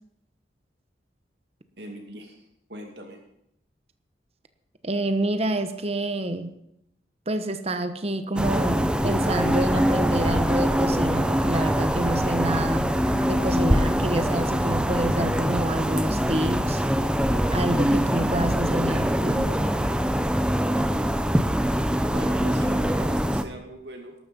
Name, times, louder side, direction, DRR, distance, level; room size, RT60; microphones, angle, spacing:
voice 1, 1.8-3.2 22.1-24.1, right 1 dB, 75° right, 3 dB, 2.4 m, -40 dB
voice 2, 4.8-6.5 7.3-13.0 13.3-16.8 17.5-19.5, right 1 dB, 35° right, 9 dB, 1.2 m, -28 dB
sound 1, 8.4-23.4, equal, 5° right, 0.8 m, -23 dB
20.5 x 12.5 x 5.4 m, 0.78 s
head